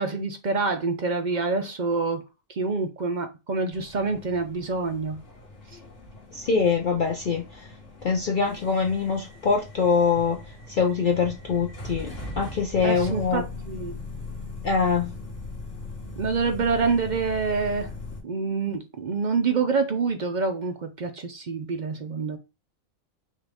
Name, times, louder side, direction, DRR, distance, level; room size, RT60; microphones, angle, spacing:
voice 1, 0.0-2.2 2.5-5.2 12.8-13.9 16.2-17.9 18.2-22.4, right 4 dB, 50° right, 0.6 m, -26 dB
sound 1, 3.7-18.2, left 2 dB, 65° left, 2.0 m, -40 dB
voice 2, 6.3-7.7 8.0-10.4 10.7-13.5 14.6-15.1, left 5 dB, 50° left, 0.7 m, -24 dB
5.5 x 2.5 x 3.5 m
omnidirectional pair, 1.4 m